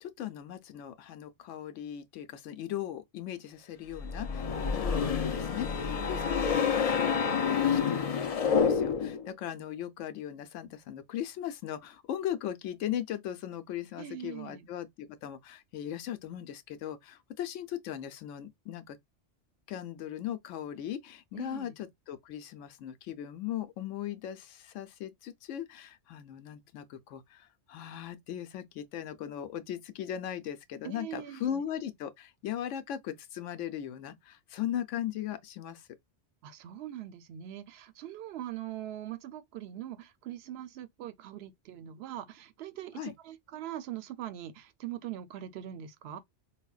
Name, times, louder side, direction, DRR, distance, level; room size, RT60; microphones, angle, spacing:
voice 1, 0.0-8.0 8.4-19.0 19.7-35.9 43.0-43.1, left 10 dB, 85° left, 0.9 m, -38 dB
sound 1, 4.0-9.3, left 6 dB, 55° left, 0.4 m, -28 dB
voice 2, 14.0-14.7 21.3-21.7 30.8-31.6 36.4-46.2, right 12 dB, 65° right, 0.7 m, -42 dB
4.8 x 2.1 x 2.3 m
omnidirectional pair, 1.2 m